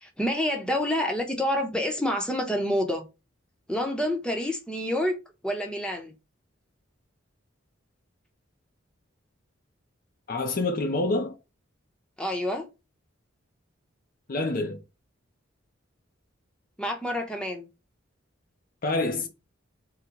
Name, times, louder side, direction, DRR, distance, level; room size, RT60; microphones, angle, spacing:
voice 1, 0.0-3.1 3.7-5.1 5.4-6.1 12.2-12.7 16.8-17.7, left 1 dB, 5° left, 0.8 m, -28 dB
voice 2, 10.3-11.4 14.3-14.8 18.8-19.3, left 2 dB, 45° left, 0.6 m, -27 dB
3.9 x 2.2 x 4.4 m
head